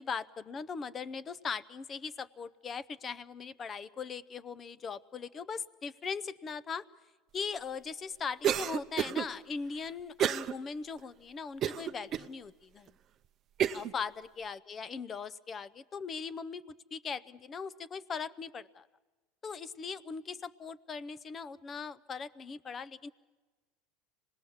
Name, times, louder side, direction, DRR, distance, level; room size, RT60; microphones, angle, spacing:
voice 1, 0.0-6.8 7.3-12.9 13.7-16.6 16.9-18.9 19.4-23.1, left 5 dB, 25° left, 18 dB, 0.6 m, -40 dB
Cough, 8.4-9.2 10.2-10.5 11.0-11.1 11.6-12.3 12.9-13.0 13.6-13.9, right 10 dB, 40° right, 0.7 m, -30 dB
26.0 x 19.5 x 7.2 m, 1.3 s
supercardioid pair, 135°, 0 cm